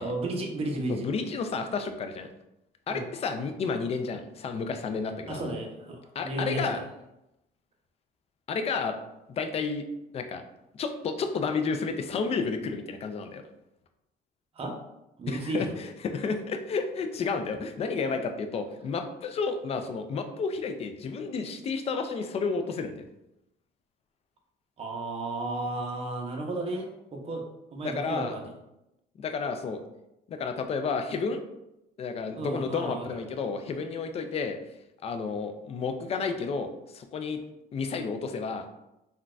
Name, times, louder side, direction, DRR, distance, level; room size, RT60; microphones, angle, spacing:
voice 1, 0.0-1.1 2.9-3.0 5.3-6.8 14.5-14.8 15.2-15.7 24.8-27.5 27.7-28.5 32.3-33.2, right 2 dB, 35° right, 1 dB, 0.7 m, -33 dB
voice 2, 0.9-2.3 2.9-5.6 6.1-6.8 8.5-9.0 9.3-9.8 10.1-10.4 10.7-13.4 15.3-23.0 27.8-28.4 29.2-29.8 30.3-31.4 32.0-34.6 35.0-37.4 37.7-38.7, left 4 dB, 35° left, 6 dB, 0.4 m, -31 dB
3.8 x 2.3 x 2.3 m, 0.89 s
cardioid pair, 110°, 17 cm